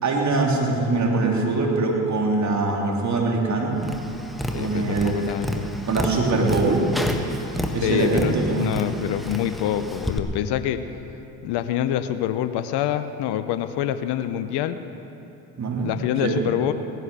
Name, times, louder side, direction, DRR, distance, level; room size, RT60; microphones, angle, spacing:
voice 1, 0.0-3.8 4.5-5.2 5.9-6.8 7.7-8.7 15.6-15.9 16.2-16.4, right 3 dB, 40° right, -1 dB, 3.3 m, -22 dB
Tap, 3.8-10.2, left 1 dB, ahead, 1.4 m, -30 dB
voice 2, 4.5-5.7 7.8-10.8 11.4-14.8 15.8-16.7, left 11 dB, 60° left, 11 dB, 0.8 m, -26 dB
18.0 x 11.0 x 6.9 m, 2.9 s
hypercardioid pair, 70°, 45 cm